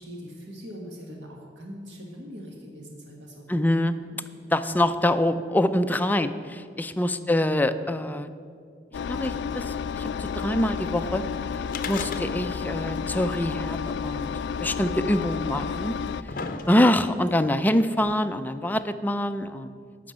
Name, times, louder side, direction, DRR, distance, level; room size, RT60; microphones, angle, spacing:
voice 1, 0.0-4.2 7.4-7.9 15.6-15.9, equal, 85° right, 0 dB, 1.7 m, -42 dB
voice 2, 3.5-3.9 4.5-8.3 9.1-9.6 9.9-11.2 11.9-14.3 14.6-15.9 16.7-19.7, left 1 dB, 10° left, 9 dB, 0.4 m, -25 dB
Engine, 8.9-16.2, left 6 dB, 75° left, 0.3 m, -31 dB
sound 1, 11.7-12.7 13.0-13.1 14.0-14.1 15.0-15.1 15.8-17.2 18.0-18.1, left 4 dB, 50° left, 0.7 m, -35 dB
11.5 x 5.9 x 8.7 m, 2.2 s
head